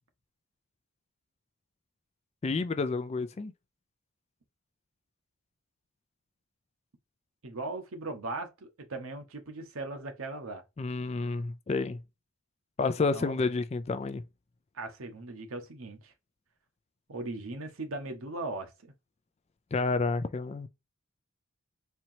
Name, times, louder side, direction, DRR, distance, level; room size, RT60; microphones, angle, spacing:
voice 1, 2.4-3.5 10.8-12.0 12.8-14.2 19.7-20.7, left 3 dB, 30° left, 0.3 m, -30 dB
voice 2, 7.4-10.6 13.1-13.4 14.7-16.1 17.1-18.9, right 2 dB, 70° right, 0.9 m, -38 dB
4.4 x 2.9 x 2.7 m
head